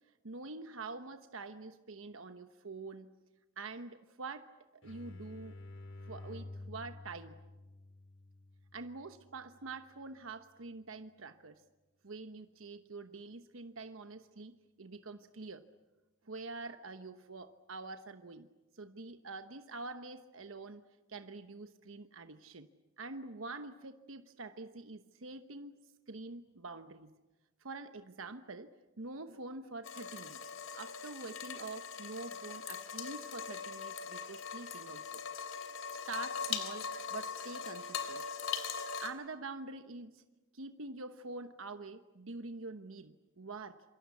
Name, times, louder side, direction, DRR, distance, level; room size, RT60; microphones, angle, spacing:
voice 1, 0.2-3.1 3.6-4.5 4.8-5.5 6.1-7.4 8.7-11.6 12.0-14.5 14.8-15.6 16.2-18.5 18.7-20.8 21.1-22.7 23.0-25.8 26.1-27.1 27.6-30.4 30.7-35.2 36.1-38.2 39.0-40.2 40.5-43.8, right 3 dB, 90° right, 8 dB, 1.1 m, -46 dB
sound 1, 4.8-10.3, left 2 dB, 65° left, 2.5 m, -51 dB
sound 2, 29.8-39.1, left 6 dB, 85° left, 3.3 m, -41 dB
27.5 x 25.0 x 8.4 m, 1.1 s
head